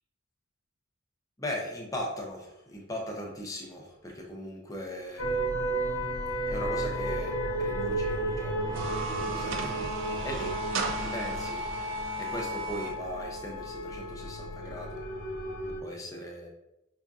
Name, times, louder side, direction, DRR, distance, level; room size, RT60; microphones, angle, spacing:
voice 1, 1.4-5.6 6.5-9.8 10.2-10.6 11.0-15.0 15.8-16.5, left 1 dB, 15° left, 0 dB, 0.5 m, -39 dB
sound 1, 5.2-15.8, right 1 dB, 75° left, 0.9 m, -33 dB
sound 2, 8.6-12.9, right 5 dB, 65° right, 0.4 m, -36 dB
4.8 x 2.5 x 2.3 m, 0.87 s
head